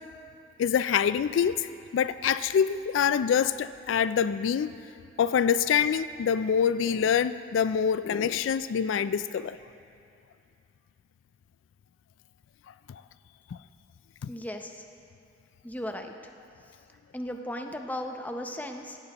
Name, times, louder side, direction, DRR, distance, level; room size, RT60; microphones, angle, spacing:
voice 1, 0.6-1.7 1.9-4.7 5.2-9.6 12.9-13.0, left 7 dB, 75° left, 14 dB, 0.3 m, -25 dB
voice 2, 14.3-14.8 15.6-16.2 17.1-19.0, left 1 dB, 10° left, 4 dB, 0.6 m, -36 dB
17.5 x 15.5 x 3.0 m, 2.6 s
head